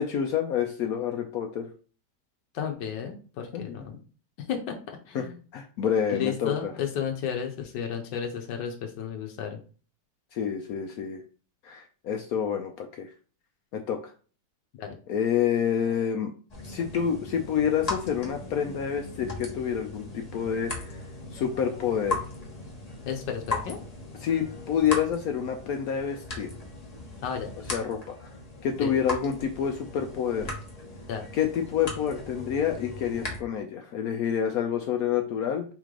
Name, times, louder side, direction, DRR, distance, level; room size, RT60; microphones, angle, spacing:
voice 1, 0.0-1.7 3.5-3.8 5.1-5.3 5.5-6.7 10.3-11.2 11.6-13.1 13.7-14.1 15.1-16.3 16.6-21.0 21.3-22.2 24.2-26.5 27.7-28.3 28.6-30.5 31.3-35.7, left 8 dB, 70° left, 4 dB, 0.9 m, -28 dB
voice 2, 2.5-4.0 4.5-4.8 5.1-5.4 6.1-9.6 14.8-14.9 23.1-23.8 27.2-27.5 28.8-28.9 31.1-31.2, left 8 dB, 90° left, 3 dB, 1.3 m, -32 dB
sound 1, 16.5-33.4, left 2 dB, 30° left, 0.9 m, -38 dB
4.2 x 3.2 x 3.7 m, 0.39 s
omnidirectional pair, 1.9 m